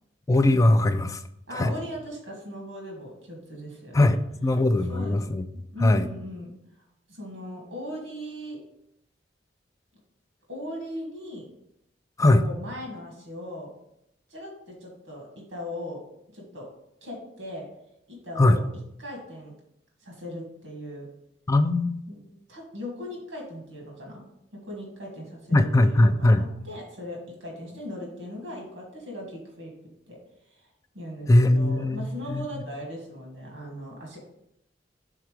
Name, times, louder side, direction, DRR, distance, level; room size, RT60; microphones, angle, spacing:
voice 1, 0.3-1.2 1.6-1.7 3.9-5.4 5.8-6.1 12.2-12.4 18.4-18.6 21.5-22.0 25.5-26.4 31.3-32.6, left 1 dB, 20° left, 9 dB, 0.3 m, -20 dB
voice 2, 1.5-4.1 4.9-5.2 5.5-6.5 7.1-8.6 10.5-11.4 12.3-13.7 14.3-16.0 16.3-16.7 17.0-17.7 18.1-18.7 19.0-19.5 20.0-21.1 22.1-22.2 22.5-24.2 24.6-30.2 30.5-30.6 30.9-34.2, left 1 dB, 70° right, -1 dB, 1.7 m, -38 dB
5.8 x 3.6 x 4.9 m, 0.78 s
head